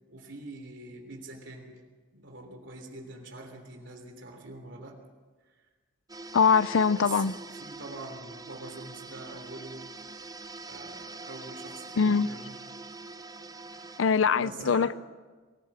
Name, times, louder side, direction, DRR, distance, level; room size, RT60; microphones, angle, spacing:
voice 1, 0.1-1.8 2.1-5.0 5.5-5.6 6.9-9.9 10.6-12.6 13.9-14.1 14.4-14.9, right 2 dB, 70° right, 3.3 m, -44 dB
sound 1, 6.1-14.0, right 3 dB, 20° right, 0.7 m, -44 dB
voice 2, 6.3-7.3 12.0-12.3 14.0-14.9, left 5 dB, 85° left, 0.5 m, -23 dB
23.0 x 16.0 x 7.4 m
head